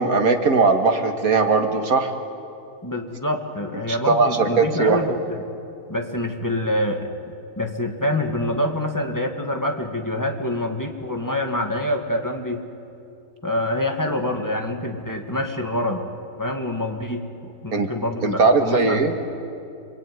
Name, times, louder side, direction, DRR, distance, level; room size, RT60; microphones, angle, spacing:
voice 1, 0.0-2.1 3.9-5.0 17.7-17.9 18.2-19.1, right 4 dB, 65° right, 5 dB, 2.3 m, -19 dB
voice 2, 2.8-5.5 5.9-7.1 7.6-12.7 13.4-16.1 16.4-19.1, left 1 dB, 10° left, 3 dB, 2.1 m, -26 dB
27.5 x 22.5 x 9.4 m, 2.6 s
omnidirectional pair, 1.6 m